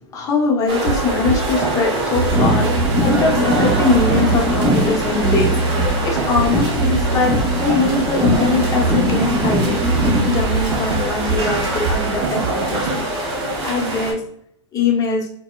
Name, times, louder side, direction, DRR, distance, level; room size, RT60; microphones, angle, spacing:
voice 1, 0.1-5.5 6.0-9.8 10.2-13.0 13.6-14.2 14.7-15.3, left 3 dB, 20° left, -1 dB, 0.8 m, -21 dB
sound 1, 0.7-14.1, right 2 dB, 30° right, 1.3 m, -25 dB
sound 2, 0.9-13.0, right 3 dB, 65° right, 0.5 m, -23 dB
sound 3, 2.3-6.1 6.4-10.4, left 1 dB, 10° right, 0.5 m, -22 dB
4.1 x 2.1 x 2.3 m, 0.69 s
hypercardioid pair, 135°, 16 cm